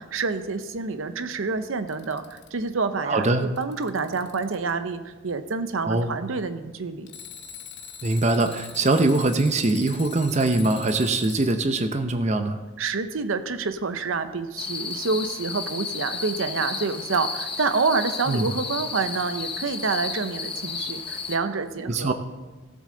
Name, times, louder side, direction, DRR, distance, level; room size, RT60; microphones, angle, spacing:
voice 1, 0.0-7.1 12.8-22.1, right 4 dB, 80° right, 10 dB, 0.7 m, -28 dB
Alarm, 1.7-2.7 3.3-4.7 7.1-11.6 14.9-15.0 17.1-17.2, left 7 dB, 55° left, 0.8 m, -42 dB
voice 2, 3.0-3.5 5.8-6.1 8.0-12.6 18.3-18.5 21.9-22.1, right 2 dB, 35° right, 8 dB, 0.6 m, -22 dB
sound 1, 14.6-21.4, left 5 dB, 25° left, 0.9 m, -33 dB
16.5 x 7.5 x 3.8 m, 1.2 s
head